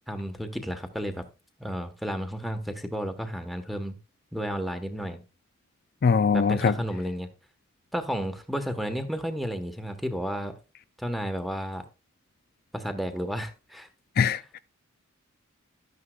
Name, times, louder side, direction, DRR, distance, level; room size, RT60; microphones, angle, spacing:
voice 1, 0.1-1.2 1.6-4.0 4.3-5.2 6.3-7.3 7.9-10.5 11.0-11.8 12.7-13.9, equal, ahead, 1.3 m, -32 dB
voice 2, 6.0-6.7 14.2-14.6, left 5 dB, 45° left, 0.4 m, -22 dB
12.5 x 9.5 x 2.4 m
head